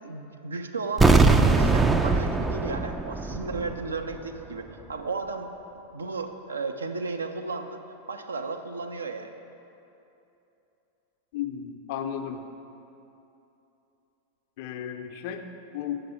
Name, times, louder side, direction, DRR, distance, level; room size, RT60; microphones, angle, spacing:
voice 1, 0.0-5.5 5.9-7.8 8.1-9.3, right 3 dB, 75° right, 6 dB, 0.5 m, -34 dB
sound 1, 1.0-4.1, right 3 dB, 10° right, 0.3 m, -21 dB
voice 2, 11.3-12.4 14.6-15.4 15.7-16.0, left 9 dB, 50° left, 7 dB, 0.5 m, -34 dB
7.9 x 6.6 x 4.3 m, 2.9 s
figure-of-eight pair, 90°, 0 cm